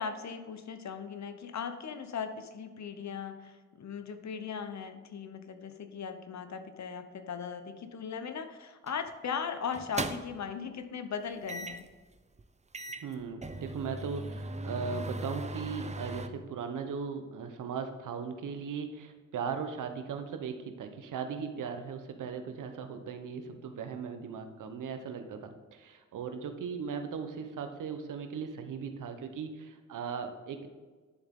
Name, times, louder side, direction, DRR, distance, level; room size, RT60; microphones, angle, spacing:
voice 1, 0.0-11.9, left 6 dB, 65° left, 9 dB, 0.9 m, -38 dB
sound 1, 8.9-9.1 9.7-10.5 11.5-11.9 12.4-12.5 12.7-16.3, right 2 dB, 20° right, 0.7 m, -38 dB
voice 2, 13.0-30.7, right 6 dB, 85° right, 7 dB, 1.0 m, -38 dB
10.5 x 7.1 x 3.7 m, 1.4 s
cardioid pair, 65°, 30 cm